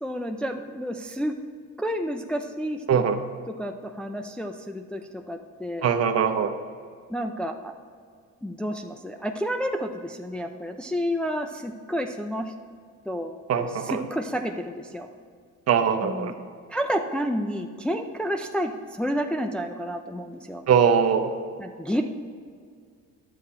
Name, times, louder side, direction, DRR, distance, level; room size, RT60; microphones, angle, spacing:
voice 1, 0.0-1.4 1.8-3.0 3.5-5.9 7.1-7.7 8.4-12.5 13.1-15.1 16.0-16.3 16.7-20.6 21.6-22.0, equal, 5° left, 4 dB, 0.4 m, -30 dB
voice 2, 5.8-6.5 13.5-14.0 15.7-16.3 20.7-21.3, right 7 dB, 55° right, 7 dB, 0.9 m, -21 dB
10.0 x 7.4 x 4.3 m, 2.1 s
cardioid pair, 110°, 31 cm